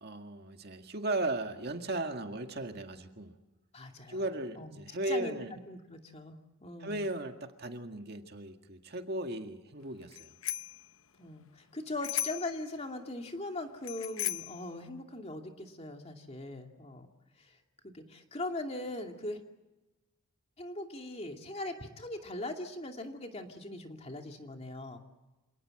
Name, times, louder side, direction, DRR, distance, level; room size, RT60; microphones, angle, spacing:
voice 1, 0.0-3.3 4.1-5.5 6.8-10.3, right 2 dB, 50° right, 5 dB, 2.0 m, -36 dB
voice 2, 3.7-4.3 4.5-4.8 5.1-6.3 6.6-7.0 11.2-17.1 17.4-17.6 17.8-19.4 20.6-25.0, left 2 dB, 30° left, 4 dB, 2.6 m, -40 dB
Bicycle bell, 10.1-10.8 12.0-12.6 13.8-14.6, left 12 dB, 80° left, 0.9 m, -36 dB
27.5 x 18.5 x 7.8 m, 1.1 s
head